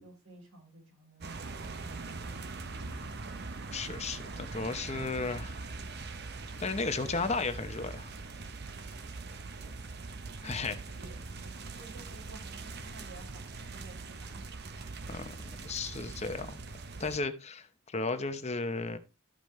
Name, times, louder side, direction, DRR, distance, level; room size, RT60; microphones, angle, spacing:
voice 1, 0.0-1.6 10.4-14.5, right 2 dB, 85° right, -1 dB, 5.6 m, -54 dB
sound 1, 1.2-17.2, right 3 dB, 45° right, 0.8 m, -42 dB
voice 2, 3.7-5.6 6.6-8.1 10.4-10.7 15.1-15.3 15.6-16.6 17.0-19.0, left 3 dB, 30° left, 9 dB, 0.8 m, -34 dB
13.5 x 5.1 x 3.1 m, 0.28 s
head